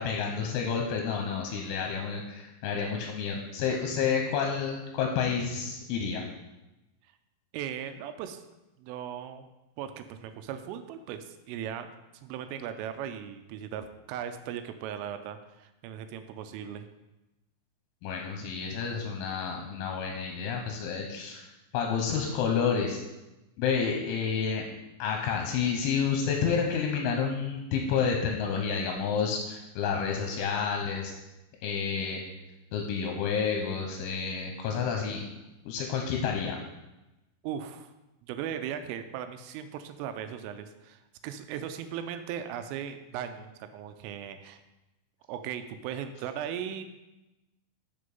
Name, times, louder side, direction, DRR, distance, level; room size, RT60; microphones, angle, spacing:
voice 1, 0.0-6.2 18.0-21.4 21.7-23.0 23.6-24.7 25.0-31.1 31.6-32.2 32.7-35.2 35.7-36.6, left 6 dB, 80° left, 2 dB, 3.1 m, -29 dB
voice 2, 7.5-8.4 8.8-9.5 9.8-11.9 12.2-16.9 37.4-37.9 38.2-44.6 45.3-46.8, right 9 dB, 85° right, 9 dB, 3.2 m, -38 dB
6.9 x 6.5 x 5.3 m, 0.99 s
omnidirectional pair, 5.7 m